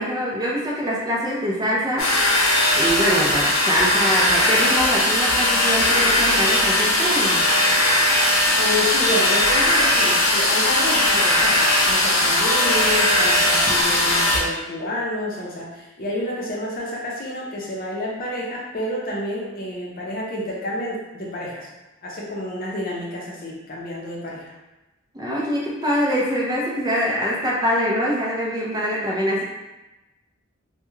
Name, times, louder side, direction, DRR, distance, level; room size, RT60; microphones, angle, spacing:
voice 1, 0.0-2.4 2.8-7.5 25.1-29.4, equal, 20° right, -5 dB, 0.5 m, -24 dB
sound 1, 2.0-14.4, left 1 dB, 90° left, 0.6 m, -19 dB
voice 2, 8.6-21.7 22.0-24.5, left 1 dB, 45° left, -4 dB, 0.6 m, -29 dB
2.3 x 2.2 x 3.1 m, 1.0 s
head